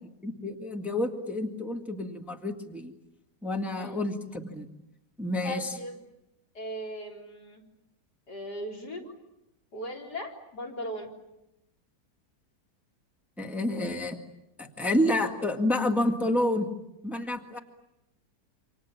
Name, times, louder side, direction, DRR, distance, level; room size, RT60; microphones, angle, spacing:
voice 1, 0.2-2.9 3.4-4.7 5.2-5.7 13.4-14.2 14.6-16.7 17.0-17.6, left 1 dB, ahead, 3 dB, 1.9 m, -29 dB
voice 2, 5.4-6.0 6.5-7.6 8.3-9.1 9.7-11.1, equal, 70° left, -1 dB, 4.7 m, -38 dB
28.5 x 26.5 x 7.4 m, 0.89 s
omnidirectional pair, 1.8 m